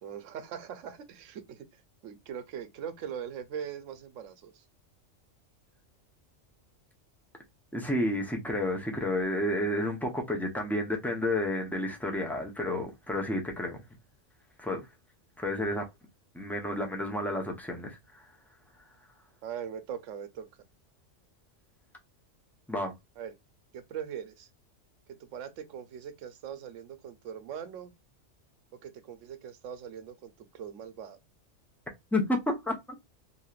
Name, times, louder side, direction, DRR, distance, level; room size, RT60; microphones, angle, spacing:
voice 1, 0.0-4.6 19.4-20.5 23.2-23.3 23.7-24.5 25.2-27.9 28.8-31.2, right 8 dB, 80° right, 1.0 m, -41 dB
voice 2, 7.7-13.8 14.6-14.8 15.4-15.8 16.3-18.3 22.7-22.9 32.1-32.7, left 1 dB, ahead, 0.5 m, -31 dB
3.1 x 2.7 x 2.3 m
omnidirectional pair, 1.3 m